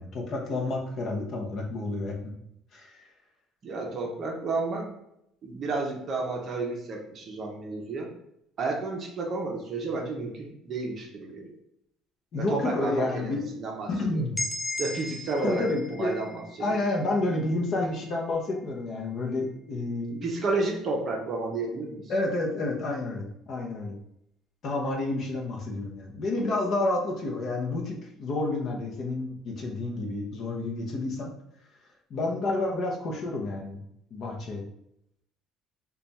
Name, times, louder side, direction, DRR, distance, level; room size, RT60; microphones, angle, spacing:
voice 1, 0.0-2.3 2.7-3.1 12.3-13.4 13.9-14.4 15.4-16.2 16.6-20.2 22.1-23.9 24.6-31.3 32.1-33.8 34.1-34.6, left 2 dB, 40° left, 0 dB, 0.7 m, -30 dB
voice 2, 3.6-4.9 5.4-8.1 8.6-11.5 12.4-14.2 14.8-15.6 15.9-16.8 20.2-22.1, right 3 dB, 30° right, 1 dB, 0.6 m, -31 dB
sound 1, 14.4-18.2, left 1 dB, ahead, 0.3 m, -37 dB
3.3 x 2.3 x 4.0 m, 0.77 s
cardioid pair, 170°, 0 cm